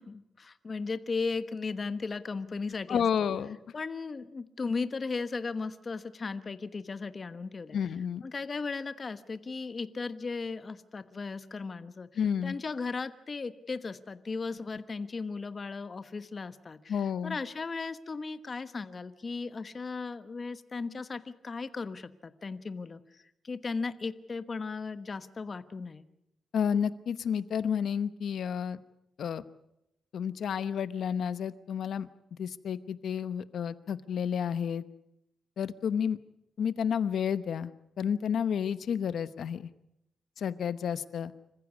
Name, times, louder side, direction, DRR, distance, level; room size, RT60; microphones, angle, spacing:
voice 1, 0.0-3.0 3.7-7.8 8.2-12.1 12.4-26.1, left 4 dB, 35° left, 12 dB, 1.1 m, -36 dB
voice 2, 2.9-3.7 7.7-8.2 12.2-12.6 16.9-17.4 26.5-28.8 29.2-29.4 30.1-32.1 32.4-34.8 35.6-36.2 36.6-37.7 38.0-39.7 40.4-41.3, left 7 dB, 70° left, 14 dB, 1.0 m, -31 dB
26.5 x 15.0 x 8.3 m, 0.84 s
cardioid pair, 110°, 0 cm